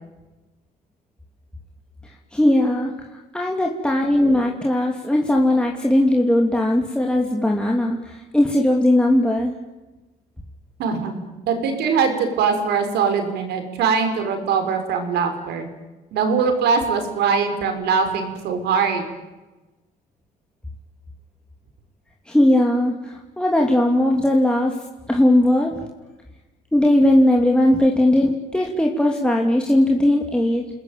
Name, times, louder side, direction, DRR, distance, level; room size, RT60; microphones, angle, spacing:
voice 1, 2.0-9.6 22.3-24.8 25.1-25.8 26.7-30.6, left 1 dB, 5° left, 0 dB, 2.9 m, -19 dB
voice 2, 10.8-11.2 11.5-15.7 16.1-19.1, right 5 dB, 75° right, 6 dB, 6.0 m, -22 dB
29.5 x 20.0 x 9.3 m, 1.1 s
cardioid pair, 110°, 17 cm